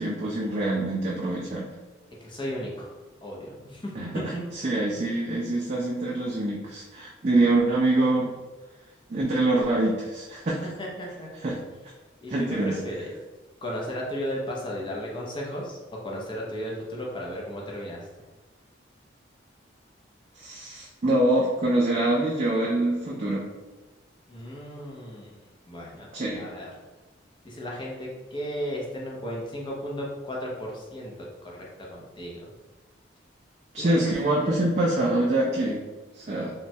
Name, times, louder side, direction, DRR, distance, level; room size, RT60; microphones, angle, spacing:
voice 1, 0.0-1.7 4.0-8.3 9.1-10.7 11.4-11.6 12.3-12.8 20.3-23.4 26.1-26.4 33.7-35.8 36.1-36.5, right 2 dB, 35° right, -4 dB, 0.3 m, -25 dB
voice 2, 2.2-2.9 3.2-4.4 10.8-11.3 12.2-13.1 13.6-18.1 24.3-25.4 25.7-26.1 26.4-26.7 27.4-32.5 33.8-34.6, equal, 25° left, -3 dB, 0.5 m, -35 dB
3.0 x 2.2 x 2.7 m, 1.2 s
head